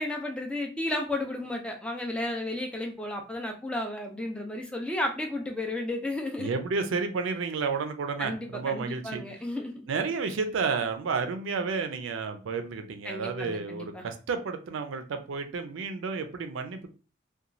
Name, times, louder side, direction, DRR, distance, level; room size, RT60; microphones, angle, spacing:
voice 1, 0.0-6.5 8.2-9.7 13.0-14.0, left 1 dB, 5° left, 2 dB, 0.4 m, -33 dB
voice 2, 6.4-9.2 9.9-16.9, right 5 dB, 80° right, 7 dB, 0.4 m, -31 dB
2.9 x 2.2 x 2.5 m, 0.34 s
head